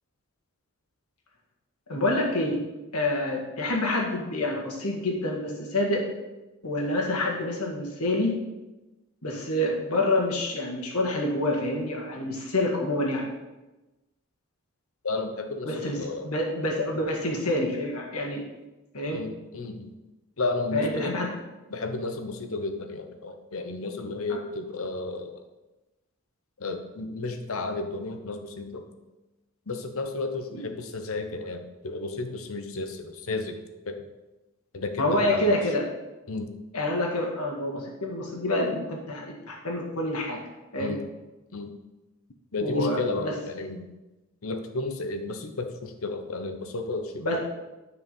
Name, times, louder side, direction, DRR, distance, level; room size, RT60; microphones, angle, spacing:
voice 1, 1.9-2.6 2.9-6.1 6.6-8.4 9.2-13.3 15.6-18.4 18.9-19.2 20.7-21.3 24.3-24.4 30.5-30.6 35.0-35.9 36.7-40.4 40.7-41.0 42.6-43.4 47.2-47.4, left 1 dB, 90° left, -1 dB, 2.0 m, -27 dB
voice 2, 15.0-16.3 19.1-19.9 20.4-21.2 21.7-25.4 26.6-28.9 29.7-33.6 33.9-34.0 34.7-35.5 36.3-36.5 40.8-41.0 41.5-41.7 42.5-43.9 44.4-47.4, left 3 dB, 70° left, 6 dB, 1.0 m, -32 dB
9.6 x 5.1 x 5.4 m, 1.1 s
head